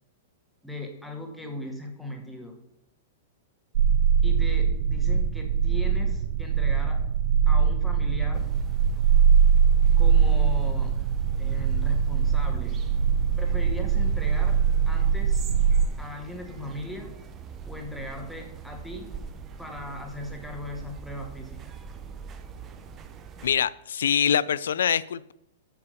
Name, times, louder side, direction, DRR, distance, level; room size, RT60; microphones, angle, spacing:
voice 1, 0.6-2.6 4.2-7.1 7.5-8.5 10.0-10.9 11.4-12.8 13.4-15.5 16.0-17.1 17.6-19.1 19.6-21.7, left 1 dB, ahead, 2.1 m, -38 dB
sound 1, 3.8-15.9, right 7 dB, 65° right, 0.7 m, -22 dB
sound 2, 8.3-23.6, right 6 dB, 25° right, 0.9 m, -43 dB
voice 2, 23.4-25.3, left 8 dB, 80° left, 0.4 m, -24 dB
8.5 x 5.9 x 6.7 m
hypercardioid pair, 140°, 0 cm